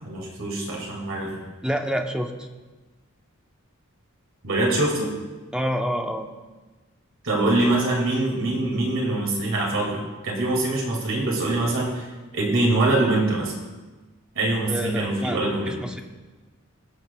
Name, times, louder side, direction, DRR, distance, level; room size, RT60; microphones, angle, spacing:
voice 1, 0.0-1.4 4.4-5.2 7.2-12.1 12.3-13.5 14.4-15.8, right 2 dB, 65° right, -1 dB, 2.2 m, -24 dB
voice 2, 1.6-2.5 5.5-6.3 14.7-16.0, equal, 5° right, 4 dB, 0.7 m, -28 dB
22.5 x 7.5 x 2.3 m, 1.2 s
head